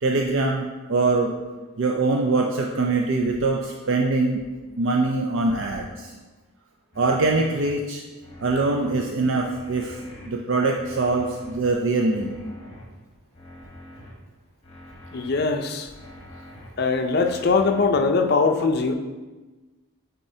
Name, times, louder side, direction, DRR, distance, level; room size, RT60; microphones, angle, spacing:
voice 1, 0.0-1.3 1.8-4.4 4.8-6.1 7.0-8.0 8.4-10.0 10.3-12.3, right 3 dB, 60° right, 1 dB, 0.5 m, -23 dB
sound 1, 6.9-7.7 8.2-9.0 9.5-10.3 10.8-11.6 12.1-12.8 13.3-14.1 14.6-15.4 15.9-16.7 17.2-17.9, left 1 dB, 30° left, 1.1 m, -44 dB
voice 2, 15.1-15.9 16.8-18.9, left 4 dB, 45° left, 5 dB, 0.5 m, -21 dB
8.7 x 4.2 x 2.7 m, 1.2 s
head